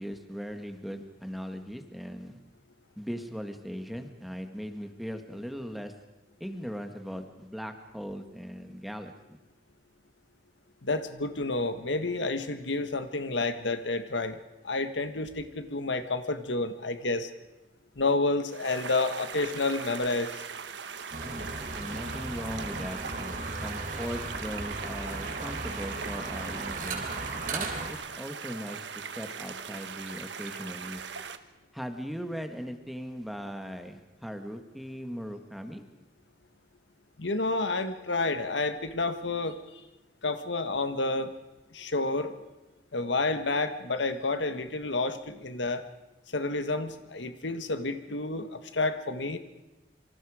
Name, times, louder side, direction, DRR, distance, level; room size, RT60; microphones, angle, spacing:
voice 1, 0.0-2.4 3.0-5.9 6.4-9.4 21.2-21.5 21.8-27.0 27.5-31.0 31.7-35.8, equal, ahead, 6 dB, 1.7 m, -39 dB
voice 2, 10.8-14.4 14.6-17.3 18.0-20.4 37.2-39.8 40.2-41.3 41.7-42.3 42.9-45.8 46.3-49.4, left 3 dB, 90° left, 9 dB, 1.6 m, -30 dB
sound 1, 18.5-31.4, right 6 dB, 80° right, 1.2 m, -40 dB
sound 2, 21.1-27.9, right 2 dB, 50° right, 3.8 m, -36 dB
27.0 x 24.5 x 5.0 m, 1.1 s
head